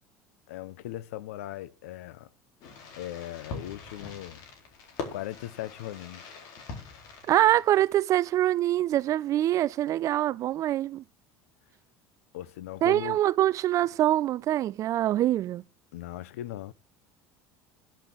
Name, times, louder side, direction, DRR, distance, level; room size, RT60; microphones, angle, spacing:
voice 1, 0.5-2.3 3.0-4.4 5.1-6.4 12.3-13.2 15.9-16.7, left 14 dB, 90° left, 0.7 m, -38 dB
Fireworks, 2.6-8.2, left 4 dB, 60° left, 4.1 m, -43 dB
voice 2, 7.3-11.0 12.8-15.6, right 13 dB, 45° right, 0.5 m, -24 dB
10.5 x 6.1 x 8.9 m
supercardioid pair, 105°, 7 cm